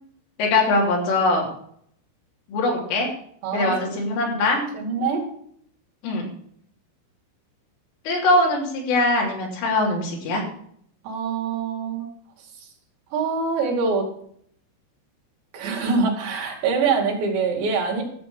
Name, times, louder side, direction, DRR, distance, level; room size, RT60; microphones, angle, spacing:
voice 1, 0.4-1.5 2.5-3.1 3.5-4.6 6.0-6.3 8.1-10.4, left 2 dB, 80° left, -1 dB, 5.8 m, -21 dB
voice 2, 3.4-3.7 4.5-5.2 11.0-12.1 12.6-12.7 13.1-14.1 15.5-18.0, right 4 dB, 65° right, 0 dB, 4.5 m, -24 dB
14.0 x 7.6 x 6.9 m, 0.65 s
omnidirectional pair, 5.7 m